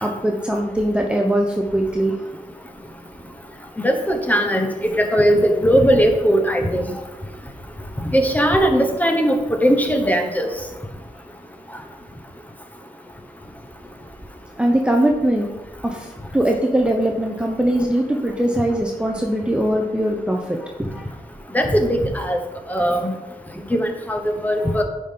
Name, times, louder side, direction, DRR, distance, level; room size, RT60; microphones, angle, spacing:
voice 1, 0.0-2.2 14.6-15.5 15.8-21.1 24.6-24.8, right 1 dB, 5° right, 1 dB, 0.7 m, -21 dB
voice 2, 3.8-6.8 8.1-10.5 21.5-22.4 22.7-23.2 23.7-24.8, equal, 10° left, 4 dB, 1.0 m, -19 dB
9.9 x 5.2 x 3.8 m, 1.1 s
wide cardioid pair, 105°, 14 cm